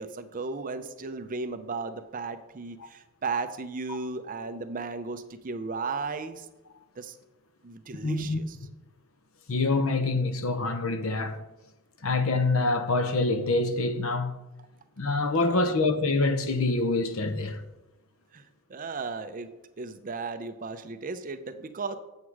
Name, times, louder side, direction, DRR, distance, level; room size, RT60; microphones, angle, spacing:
voice 1, 0.0-6.5 7.0-7.2 7.6-8.6 15.6-15.7 18.3-18.4 18.7-21.9, right 4 dB, 40° right, 0.6 m, -35 dB
voice 2, 8.0-8.4 9.5-11.4 12.0-14.4 15.0-17.6, left 3 dB, 70° left, 0.8 m, -26 dB
8.1 x 7.2 x 4.7 m
head